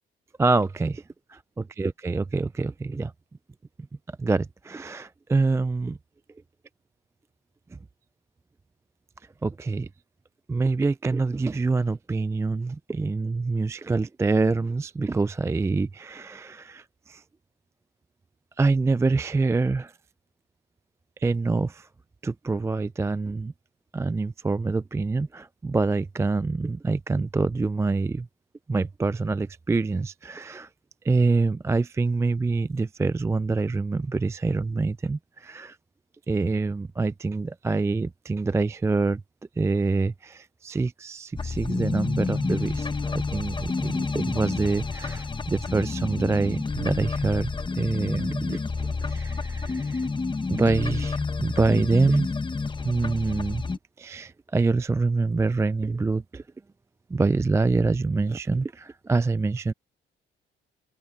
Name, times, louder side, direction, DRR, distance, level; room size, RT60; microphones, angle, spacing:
voice 1, 0.4-1.0 1.8-3.1 4.2-6.0 7.7-7.8 9.4-9.9 10.5-17.2 18.6-19.9 21.2-21.9 22.2-23.5 23.9-28.3 28.7-30.7 31.0-35.8 36.3-39.2 39.6-48.6 49.0-50.1 50.5-52.3 52.8-53.6 54.0-56.4 57.1-59.7, right 3 dB, 15° right, 0.3 m, -26 dB
sound 1, 41.4-53.8, left 4 dB, 25° left, 1.3 m, -29 dB
open air
cardioid pair, 90°, 20 cm